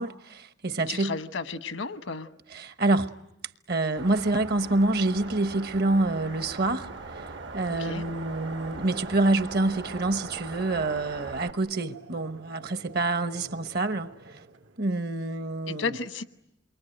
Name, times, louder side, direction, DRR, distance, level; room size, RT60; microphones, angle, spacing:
voice 1, 0.0-1.1 2.5-3.1 3.7-7.3 7.5-14.1 14.8-15.9, right 2 dB, 55° right, 1.1 m, -27 dB
voice 2, 0.9-2.3 7.8-8.0 15.7-16.2, left 4 dB, 85° left, 1.1 m, -33 dB
sound 1, 4.0-11.5, right 3 dB, 75° right, 1.4 m, -40 dB
sound 2, 5.9-14.8, right 2 dB, 90° right, 2.5 m, -51 dB
28.5 x 23.0 x 9.0 m
head